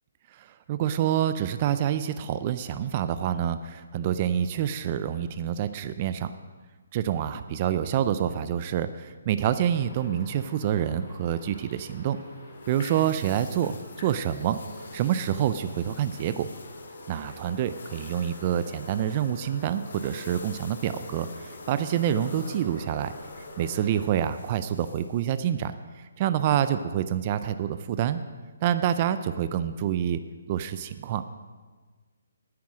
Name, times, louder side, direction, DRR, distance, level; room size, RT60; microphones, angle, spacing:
voice 1, 0.3-6.3 6.9-12.2 12.7-14.6 14.9-16.5 17.1-23.1 23.6-28.2 28.6-30.2 30.5-31.2, right 10 dB, 35° right, 12 dB, 0.4 m, -27 dB
sound 1, 9.4-24.1, left 1 dB, 50° left, 3.3 m, -45 dB
sound 2, 12.5-25.4, left 4 dB, 70° left, 1.3 m, -50 dB
9.5 x 9.4 x 6.2 m, 1.4 s
hypercardioid pair, 155°, 0 cm